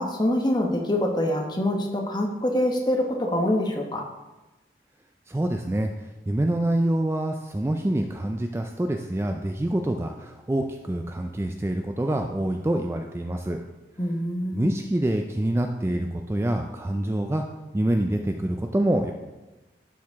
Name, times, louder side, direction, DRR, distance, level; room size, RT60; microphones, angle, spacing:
voice 1, 0.0-4.0 14.0-14.7, left 1 dB, 25° left, 1 dB, 1.0 m, -25 dB
voice 2, 5.3-5.9 6.3-13.6 14.5-17.4 17.7-19.1, right 1 dB, 15° right, 4 dB, 0.3 m, -26 dB
11.5 x 4.7 x 3.5 m, 1.1 s
head